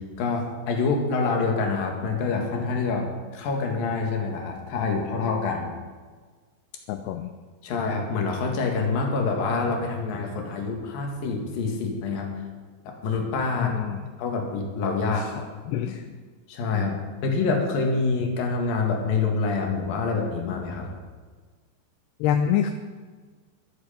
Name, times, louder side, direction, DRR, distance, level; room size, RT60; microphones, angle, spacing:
voice 1, 0.2-5.7 7.6-12.3 12.8-13.7 14.2-15.5 16.5-16.9 17.2-20.9, left 4 dB, 60° left, 1 dB, 3.4 m, -26 dB
voice 2, 6.9-7.3 13.6-14.1 15.0-15.3 15.7-16.2 16.7-17.0 22.2-22.7, left 9 dB, 80° left, 6 dB, 2.5 m, -27 dB
14.5 x 12.5 x 5.2 m, 1.5 s
omnidirectional pair, 5.1 m